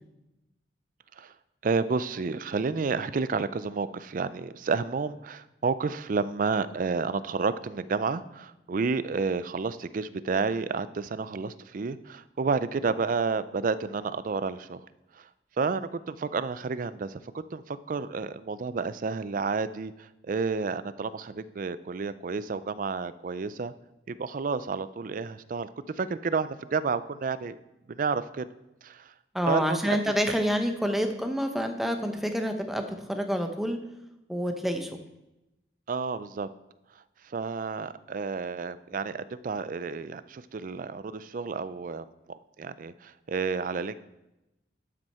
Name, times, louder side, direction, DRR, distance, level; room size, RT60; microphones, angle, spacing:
voice 1, 1.6-14.8 15.2-15.3 15.6-17.2 17.5-23.7 24.1-25.7 26.0-27.6 27.9-28.5 28.8-29.1 29.5-30.1 35.9-36.5 37.3-44.0, right 4 dB, 50° right, 15 dB, 0.4 m, -30 dB
voice 2, 29.3-33.8 34.3-34.9, equal, ahead, 5 dB, 0.8 m, -28 dB
12.0 x 6.2 x 4.3 m, 0.94 s
head